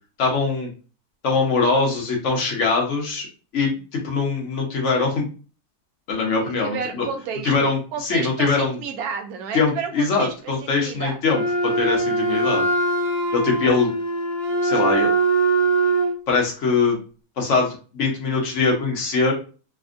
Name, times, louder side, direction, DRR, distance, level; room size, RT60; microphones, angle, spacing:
voice 1, 0.2-0.7 1.2-3.3 3.5-5.3 6.1-7.0 7.4-8.8 9.5-12.6 13.3-13.9 14.6-15.1 16.3-17.0 17.4-19.3, left 4 dB, 55° left, 0 dB, 1.2 m, -22 dB
voice 2, 6.4-10.3 10.6-11.2, right 6 dB, 75° right, 5 dB, 1.1 m, -31 dB
Wind instrument woodwind instrument, 11.3-16.2, right 2 dB, 35° right, 1.0 m, -22 dB
3.3 x 2.3 x 2.4 m, 0.36 s
omnidirectional pair, 1.7 m